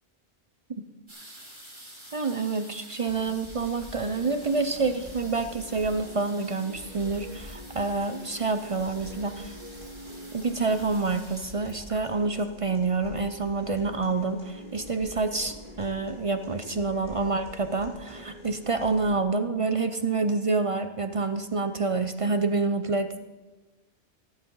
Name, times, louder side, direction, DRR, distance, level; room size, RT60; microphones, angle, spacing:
sound 1, 1.1-13.6 14.4-14.5 14.7-15.1 15.4-16.0 16.5-16.6 16.8-16.9, right 1 dB, 25° right, 3.3 m, -49 dB
voice 1, 2.1-9.5 10.3-23.2, right 3 dB, 40° right, 9 dB, 0.5 m, -27 dB
sound 2, 3.1-19.1, left 1 dB, 45° left, 3.4 m, -45 dB
13.5 x 11.0 x 5.5 m, 1.2 s
omnidirectional pair, 1.2 m